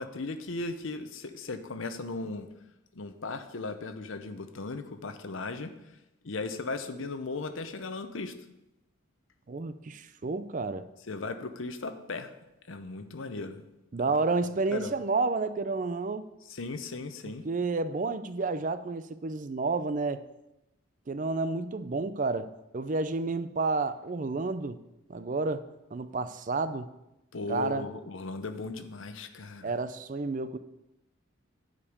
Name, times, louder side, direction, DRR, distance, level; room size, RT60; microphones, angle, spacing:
voice 1, 0.0-2.5 2.9-5.7 6.2-8.3 11.1-12.3 12.7-13.6 14.7-14.9 16.5-17.4 27.3-29.7, left 3 dB, 70° left, 9 dB, 0.8 m, -37 dB
voice 2, 9.5-10.9 13.9-16.2 17.4-20.2 21.1-24.8 25.1-25.6 25.9-26.9 27.5-27.9 29.6-30.6, right 3 dB, 40° right, 12 dB, 0.4 m, -30 dB
9.8 x 5.3 x 6.5 m, 0.92 s
head